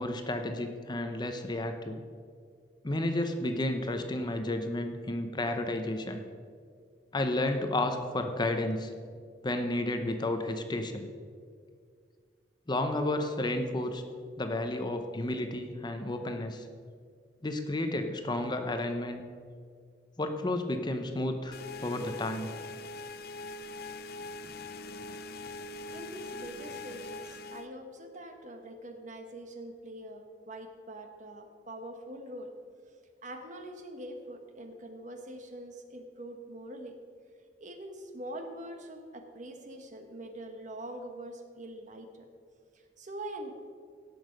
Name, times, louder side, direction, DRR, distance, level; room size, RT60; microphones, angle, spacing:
voice 1, 0.0-2.0 2.8-6.2 7.1-8.9 9.4-11.1 12.7-14.0 14.4-16.7 17.4-19.2 20.2-21.6 21.8-22.5, left 1 dB, 25° left, 6 dB, 0.8 m, -32 dB
sound 1, 21.5-27.7, left 2 dB, 60° left, 0.5 m, -42 dB
voice 2, 25.9-32.5 33.2-37.0 37.6-42.3 42.7-43.6, right 1 dB, 45° right, 5 dB, 1.2 m, -44 dB
17.0 x 6.5 x 5.2 m, 2.1 s
head